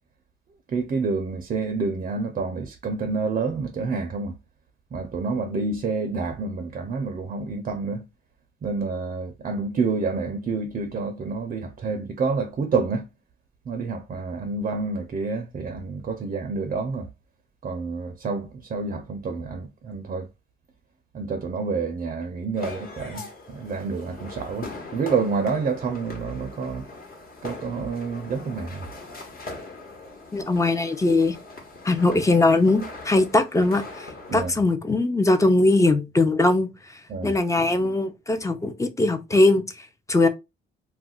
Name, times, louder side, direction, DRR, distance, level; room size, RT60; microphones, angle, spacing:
voice 1, 0.7-4.4 4.9-8.1 8.6-13.1 13.7-17.1 17.6-20.3 21.1-26.8 27.4-28.9 34.3-34.5 37.1-37.3, right 4 dB, 40° right, 0.5 m, -28 dB
sound 1, 22.6-34.5, left 3 dB, 50° left, 1.1 m, -40 dB
voice 2, 30.3-31.4 31.8-36.7 37.2-40.3, left 2 dB, 15° left, 0.5 m, -21 dB
2.3 x 2.2 x 3.6 m
cardioid pair, 90°, 20 cm